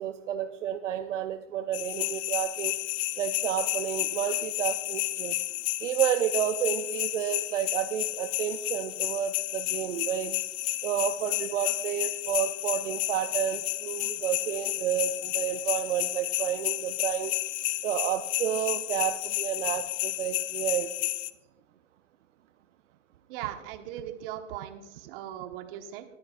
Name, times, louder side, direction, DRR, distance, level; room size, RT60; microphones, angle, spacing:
voice 1, 0.0-2.7 3.2-5.4 5.8-10.4 10.8-17.3 17.8-21.1, right 10 dB, 70° right, 9 dB, 0.7 m, -30 dB
sound 1, 1.7-21.3, left 18 dB, 30° left, 0.4 m, -31 dB
voice 2, 23.3-26.0, right 11 dB, 45° right, 7 dB, 1.4 m, -39 dB
20.5 x 10.5 x 2.5 m, 1.0 s
hypercardioid pair, 115°, 38 cm